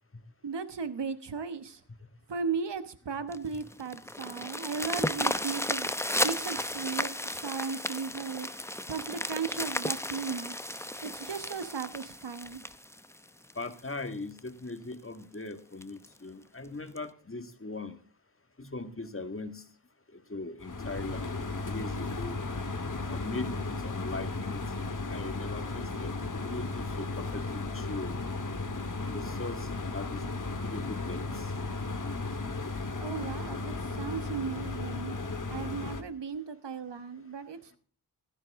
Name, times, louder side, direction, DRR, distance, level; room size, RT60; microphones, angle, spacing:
voice 1, 0.4-1.8 2.3-5.9 6.2-8.5 8.9-12.6 33.0-35.1 35.5-37.8, right 5 dB, 90° right, 1.2 m, -36 dB
sound 1, 3.3-13.8 14.4-14.5 14.9-15.0 15.3-15.4 15.8-16.1 17.0-17.1, left 1 dB, 5° left, 0.7 m, -34 dB
voice 2, 13.6-18.0 18.6-19.6 20.1-22.4 23.1-28.2 29.0-30.2 30.6-31.5 31.8-31.9, left 2 dB, 30° left, 1.8 m, -40 dB
sound 2, 20.6-36.0, left 3 dB, 50° left, 1.8 m, -35 dB
15.5 x 13.0 x 3.6 m
wide cardioid pair, 60°, 41 cm